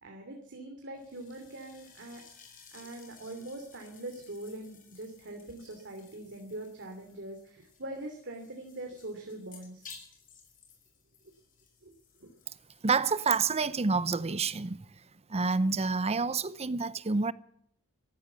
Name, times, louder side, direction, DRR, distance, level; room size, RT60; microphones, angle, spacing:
voice 1, 0.0-2.2 2.7-9.9 11.8-11.9 12.2-12.3, right 1 dB, 55° right, 2.9 m, -43 dB
sound 1, 0.9-15.2, left 6 dB, 40° left, 5.2 m, -57 dB
voice 2, 12.8-14.8 15.3-17.3, right 4 dB, 30° right, 0.6 m, -28 dB
14.0 x 12.5 x 8.1 m
head